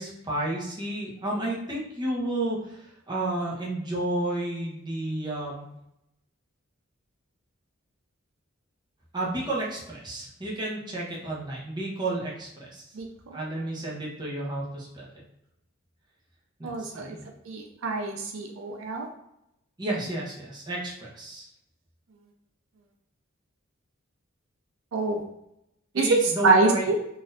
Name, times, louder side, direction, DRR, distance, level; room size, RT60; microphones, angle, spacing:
voice 1, 0.0-5.7 9.1-12.9 13.3-15.1 16.6-17.3 19.8-21.5 25.9-26.8, right 1 dB, 20° right, -5 dB, 0.8 m, -32 dB
voice 2, 16.6-17.1 17.5-19.1 24.9-25.2 25.9-27.0, right 3 dB, 70° right, 3 dB, 0.4 m, -25 dB
3.8 x 2.5 x 2.6 m, 0.83 s
head